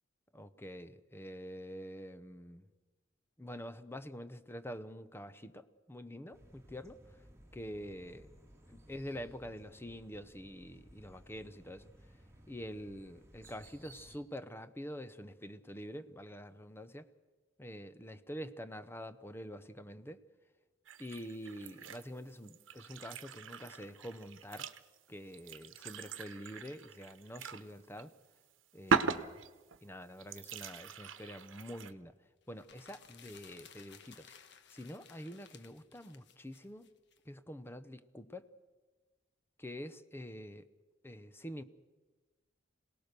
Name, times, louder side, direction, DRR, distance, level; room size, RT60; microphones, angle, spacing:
voice 1, 0.3-2.6 3.4-7.2 7.5-8.3 8.7-11.9 12.5-17.1 17.6-20.2 21.0-24.7 25.1-28.1 28.7-29.4 29.8-32.1 32.5-34.3 34.7-36.9 37.3-38.5 39.6-40.6 41.0-41.6, equal, 10° left, 11 dB, 0.8 m, -46 dB
sound 1, 6.3-14.2, right 1 dB, 15° right, 2.7 m, -59 dB
sound 2, 20.9-22.1 22.4-27.7 28.0-28.1 28.9-29.8 30.2-31.9, right 4 dB, 85° right, 1.0 m, -39 dB
sound 3, 32.5-37.2, left 7 dB, 65° left, 1.4 m, -58 dB
26.5 x 18.5 x 6.8 m, 1.3 s
head